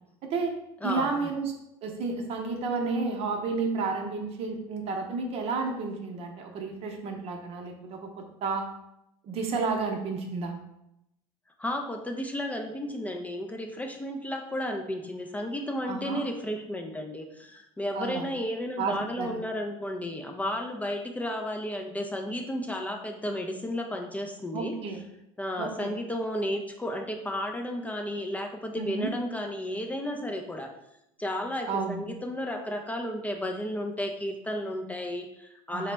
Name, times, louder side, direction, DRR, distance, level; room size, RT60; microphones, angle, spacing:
voice 1, 0.2-0.5 0.8-1.5 1.8-8.6 9.3-10.6 15.9-16.2 17.9-18.2 18.8-19.4 24.5-25.0 25.6-26.0 28.8-29.1 31.7-32.0 35.7-35.9, right 4 dB, 50° right, 3 dB, 0.6 m, -31 dB
voice 2, 0.8-1.3 11.6-24.8 25.4-30.7 31.2-35.9, left 1 dB, 10° left, 3 dB, 0.3 m, -33 dB
4.0 x 2.0 x 3.2 m, 0.84 s
supercardioid pair, 95°, 13 cm